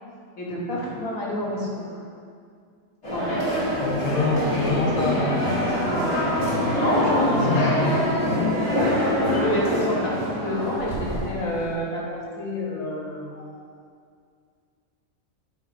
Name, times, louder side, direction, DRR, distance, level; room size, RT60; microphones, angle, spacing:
voice 1, 0.4-2.0 3.1-3.6 6.6-7.8 9.3-12.0 12.4-13.6, left 1 dB, 85° left, -4 dB, 1.8 m, -29 dB
sound 1, 3.0-11.7, equal, 55° left, 2.3 m, -24 dB
voice 2, 3.8-5.6 7.3-7.9, left 3 dB, 30° left, -3 dB, 1.0 m, -25 dB
8.1 x 3.9 x 5.0 m, 2.2 s
omnidirectional pair, 1.4 m